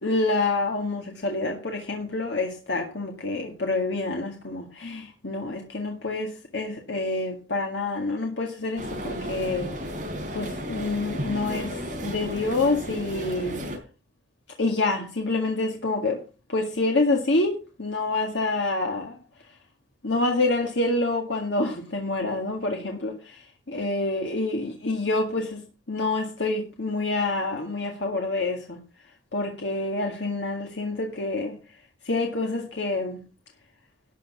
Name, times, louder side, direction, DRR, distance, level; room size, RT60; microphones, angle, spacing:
voice 1, 0.0-9.7 10.3-13.6 14.6-16.2 16.5-19.2 20.0-25.6 25.9-28.8 29.3-31.5 32.1-33.2, left 2 dB, 70° left, 1.9 m, -27 dB
sound 1, 8.8-13.8, equal, 40° right, 4.2 m, -33 dB
12.5 x 6.4 x 6.0 m
head